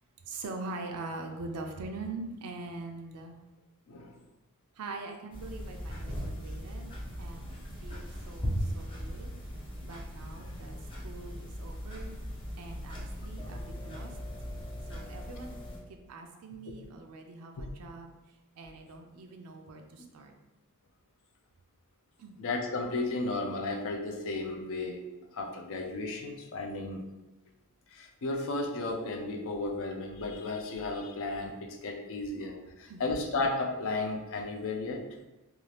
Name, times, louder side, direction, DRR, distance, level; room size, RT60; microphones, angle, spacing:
voice 1, 0.2-3.4 4.7-6.9 7.2-9.3 9.8-10.8 11.0-12.1 12.6-14.2 14.9-15.5 15.9-20.3 22.2-22.4 32.9-33.1, right 3 dB, 90° right, 3 dB, 0.4 m, -43 dB
sound 1, 5.3-15.8, equal, 25° left, 0.7 m, -39 dB
voice 2, 22.4-25.1 25.3-27.1 27.9-35.1, left 2 dB, 65° left, 3 dB, 0.4 m, -34 dB
2.6 x 2.4 x 3.2 m, 1.0 s
head